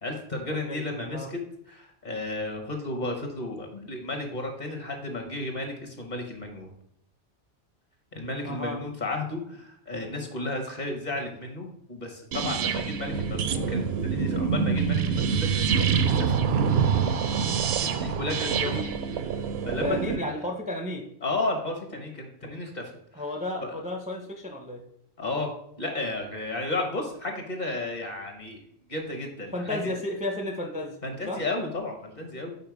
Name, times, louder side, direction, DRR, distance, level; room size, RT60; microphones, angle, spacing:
voice 1, 0.0-1.4 1.7-6.7 8.1-16.4 17.9-18.6 19.3-20.3 21.2-22.9 23.6-23.8 25.2-25.5 25.8-28.6 28.9-29.8 31.0-32.5, left 2 dB, 40° left, 3 dB, 1.2 m, -33 dB
voice 2, 0.7-1.3 8.4-8.8 18.6-18.9 19.8-21.1 23.1-24.8 29.5-31.0 31.3-31.4, left 1 dB, 10° right, 2 dB, 0.5 m, -33 dB
sound 1, 12.3-20.2, right 6 dB, 65° right, 0.7 m, -26 dB
5.5 x 4.4 x 4.7 m, 0.71 s
omnidirectional pair, 1.2 m